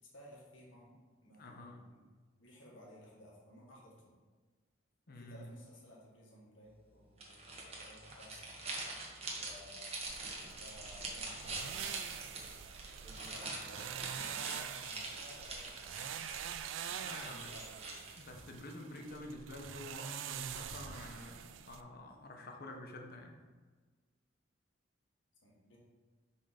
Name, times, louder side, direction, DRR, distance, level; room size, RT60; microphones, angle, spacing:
voice 1, 0.1-0.9 1.2-2.0 2.4-3.9 5.1-8.5 9.2-10.0 10.5-12.1 12.9-14.1 14.4-16.1 16.8-18.0 25.4-25.8, left 1 dB, 90° left, -4 dB, 1.6 m, -57 dB
voice 2, 1.3-1.8 5.1-5.5 13.1-13.2 17.0-17.5 18.2-23.3, left 1 dB, 55° left, 2 dB, 0.8 m, -49 dB
sound 1, 7.2-18.4, right 2 dB, 35° right, 1.1 m, -45 dB
sound 2, 10.1-21.8, right 9 dB, 80° right, 0.3 m, -45 dB
5.5 x 3.6 x 5.1 m, 1.4 s
head